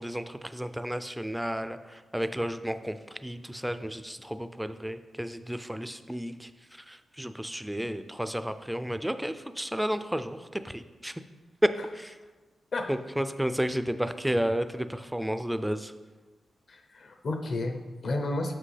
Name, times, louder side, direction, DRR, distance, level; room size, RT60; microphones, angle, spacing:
voice 1, 0.0-11.2 11.6-12.1 12.9-15.9, equal, 5° right, 11 dB, 0.3 m, -32 dB
voice 2, 16.7-18.5, left 2 dB, 55° left, 5 dB, 0.6 m, -32 dB
7.5 x 5.8 x 3.3 m, 1.3 s
wide cardioid pair, 130°, 0 cm